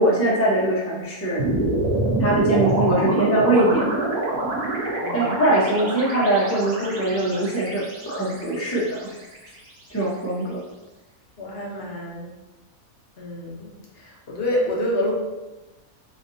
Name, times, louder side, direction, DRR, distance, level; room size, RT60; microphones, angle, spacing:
voice 1, 0.0-1.4 2.2-4.1 5.1-9.0 9.9-10.6, right 1 dB, 15° left, -5 dB, 0.5 m, -22 dB
sound 1, 1.4-9.7, right 2 dB, 75° right, 1.2 m, -26 dB
voice 2, 5.0-5.4 11.4-12.3 13.2-13.7 13.9-15.1, left 1 dB, 50° left, -3 dB, 0.9 m, -27 dB
4.2 x 2.7 x 2.7 m, 1.1 s
omnidirectional pair, 1.5 m